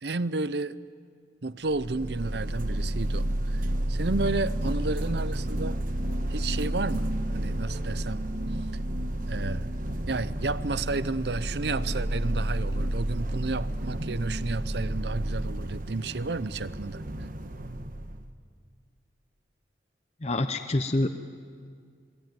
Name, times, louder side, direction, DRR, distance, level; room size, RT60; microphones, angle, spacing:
voice 1, 0.0-0.8 1.4-5.8 6.3-8.3 9.3-9.7 10.1-17.0, right 3 dB, 65° right, 16 dB, 0.7 m, -32 dB
sound 1, 1.7-18.3, right 1 dB, 50° right, 1.3 m, -31 dB
voice 2, 20.2-21.1, left 2 dB, 35° left, 8 dB, 0.8 m, -26 dB
27.5 x 20.5 x 9.3 m, 2.1 s
head